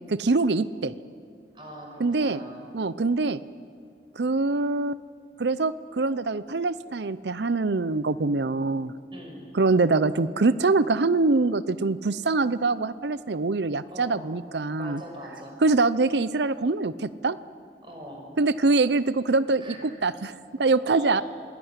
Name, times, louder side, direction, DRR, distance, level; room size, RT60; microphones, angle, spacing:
voice 1, 0.1-0.9 2.0-2.4 2.7-3.4 4.2-5.0 5.4-8.9 9.5-15.0 15.6-17.4 18.4-21.2, right 3 dB, 75° right, 16 dB, 0.7 m, -24 dB
voice 2, 1.5-2.6 9.1-9.4 13.9-14.3 14.7-15.6 17.8-18.2 19.6-19.8 20.9-21.2, equal, 30° right, 1 dB, 6.0 m, -41 dB
26.5 x 20.0 x 9.8 m, 2.2 s
head